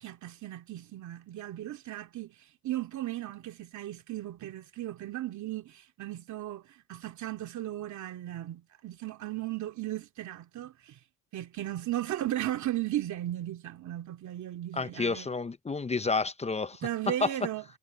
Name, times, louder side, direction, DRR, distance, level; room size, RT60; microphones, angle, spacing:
voice 1, 0.0-2.4 2.6-6.6 6.9-11.0 11.3-15.3 16.8-17.6, right 13 dB, 75° right, 2.3 m, -36 dB
voice 2, 14.7-16.8 17.1-17.3, left 4 dB, 20° left, 0.6 m, -30 dB
cardioid pair, 90°, 30 cm